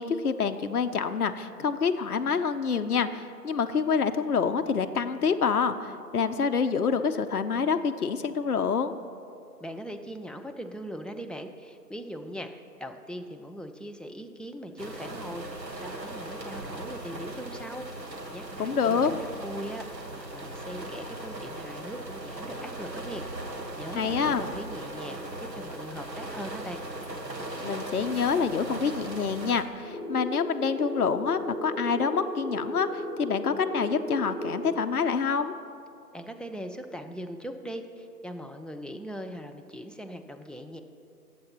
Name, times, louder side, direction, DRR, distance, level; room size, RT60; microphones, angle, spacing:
voice 1, 0.0-8.9 18.6-19.1 23.9-24.4 27.6-35.5, left 6 dB, 65° left, 8 dB, 0.5 m, -27 dB
voice 2, 9.6-12.5 12.8-19.9 20.2-26.8 36.1-40.8, equal, ahead, 4 dB, 0.3 m, -40 dB
sound 1, 14.8-29.6, right 1 dB, 80° right, 1.4 m, -38 dB
sound 2, 29.8-34.8, equal, 45° right, 2.2 m, -35 dB
19.5 x 7.6 x 2.9 m, 2.6 s
figure-of-eight pair, 170°, 49 cm